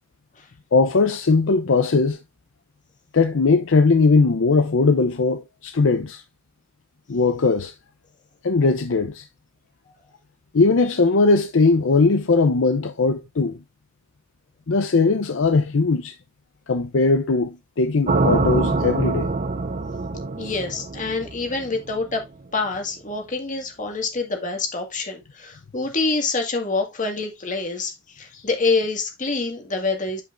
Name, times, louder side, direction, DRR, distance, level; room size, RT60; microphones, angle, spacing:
voice 1, 0.7-2.2 3.1-6.2 7.1-7.7 8.4-9.2 10.5-13.6 14.7-16.1 16.7-19.3, left 3 dB, 70° left, 0.6 m, -19 dB
sound 1, 18.1-22.1, right 3 dB, 40° right, 0.6 m, -24 dB
voice 2, 20.4-22.2 22.5-30.2, left 3 dB, 40° left, 1.8 m, -26 dB
9.2 x 5.3 x 2.5 m
head